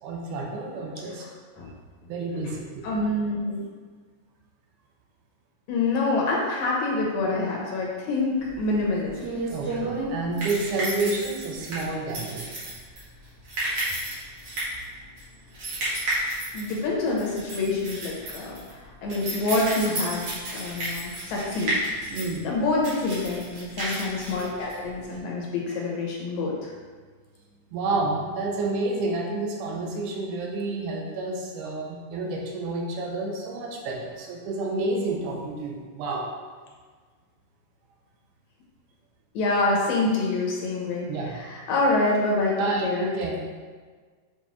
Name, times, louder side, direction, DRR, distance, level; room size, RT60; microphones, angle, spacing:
voice 1, 0.0-1.3 2.1-2.7 9.5-12.5 22.1-22.4 27.7-36.3 41.1-41.4 42.6-43.5, right 2 dB, 80° right, 0 dB, 2.3 m, -29 dB
voice 2, 2.8-3.6 5.7-9.3 16.5-21.8 22.4-26.7 39.3-43.1, left 2 dB, 70° left, -2 dB, 2.2 m, -26 dB
sound 1, 8.5-25.2, right 1 dB, 50° right, 2.5 m, -32 dB
7.1 x 4.4 x 3.1 m, 1.5 s
omnidirectional pair, 3.7 m